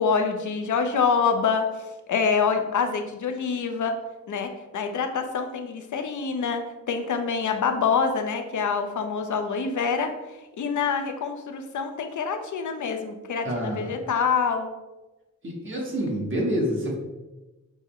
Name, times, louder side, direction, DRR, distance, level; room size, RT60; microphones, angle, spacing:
voice 1, 0.0-1.7 2.1-4.0 4.3-10.1 10.6-14.7, left 5 dB, 85° left, 5 dB, 0.6 m, -26 dB
voice 2, 13.4-13.9 15.4-16.9, equal, 40° right, -3 dB, 1.0 m, -27 dB
6.2 x 2.1 x 3.5 m, 1.1 s
wide cardioid pair, 140°, 30 cm